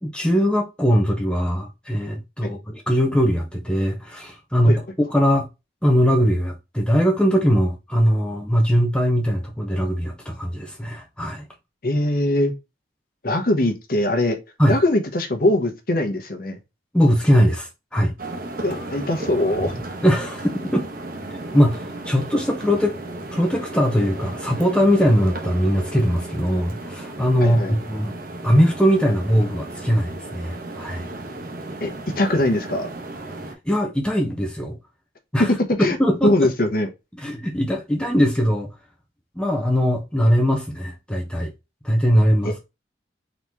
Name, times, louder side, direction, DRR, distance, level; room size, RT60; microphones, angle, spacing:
voice 1, 0.0-4.8 5.1-5.5 5.8-11.4 14.6-14.8 16.9-18.1 20.0-20.9 21.3-23.0 23.3-28.1 28.4-31.1 33.7-34.8 35.3-35.5 35.8-36.5 37.2-38.7 39.4-41.5 41.8-42.5, equal, 5° left, 0.7 m, -20 dB
voice 2, 11.8-12.5 13.2-14.4 14.7-16.6 18.6-19.7 27.4-27.7 31.8-32.9 35.8-36.0 36.2-36.9 42.4-42.5, left 1 dB, 50° left, 1.0 m, -21 dB
sound 1, 18.2-33.5, right 2 dB, 50° right, 0.9 m, -34 dB
4.0 x 3.0 x 3.4 m
head